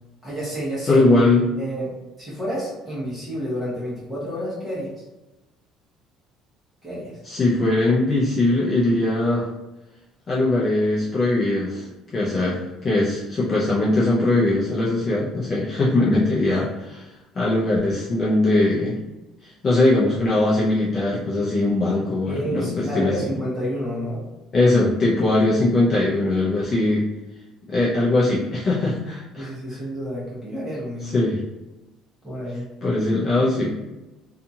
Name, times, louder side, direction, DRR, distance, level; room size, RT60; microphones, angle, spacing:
voice 1, 0.2-1.0 1.6-5.0 6.8-7.2 22.3-24.3 29.4-31.2 32.2-32.7, equal, 10° right, -9 dB, 1.0 m, -30 dB
voice 2, 0.9-1.5 7.2-9.5 10.3-11.9 12.1-17.1 17.3-19.0 19.4-23.1 24.5-27.1 27.7-29.5 31.0-31.4 32.8-33.8, left 2 dB, 30° left, -7 dB, 0.5 m, -20 dB
2.7 x 2.4 x 2.7 m, 1.0 s
cardioid pair, 155°, 0 cm